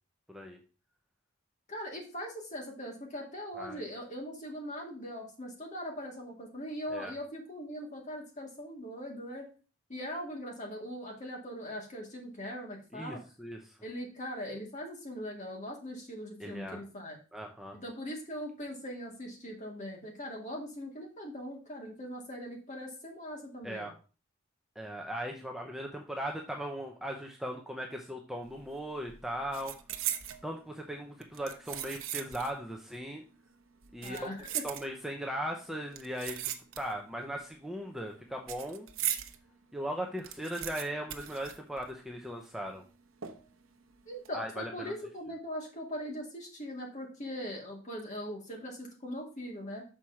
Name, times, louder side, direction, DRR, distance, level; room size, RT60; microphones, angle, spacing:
voice 1, 0.3-0.6 3.5-3.8 6.9-7.1 12.9-13.8 16.4-16.8 17.3-17.8 23.6-23.9 24.8-29.8 30.4-33.2 33.9-34.3 34.6-38.9 39.7-42.8 44.3-44.9, equal, ahead, 2 dB, 0.6 m, -38 dB
voice 2, 1.7-9.5 9.9-13.2 13.8-17.2 17.8-23.9 34.0-34.6 44.1-49.8, equal, 35° left, 0 dB, 2.1 m, -41 dB
sound 1, 28.5-28.8 29.0-30.4 31.2-32.6 32.9-33.0 33.8-35.2 35.9-37.1 37.4-39.4 39.8-39.9 40.0-42.2 42.4-42.5 43.2-43.6 44.1-44.3, right 11 dB, 70° right, 0.8 m, -38 dB
6.3 x 4.4 x 5.7 m, 0.35 s
head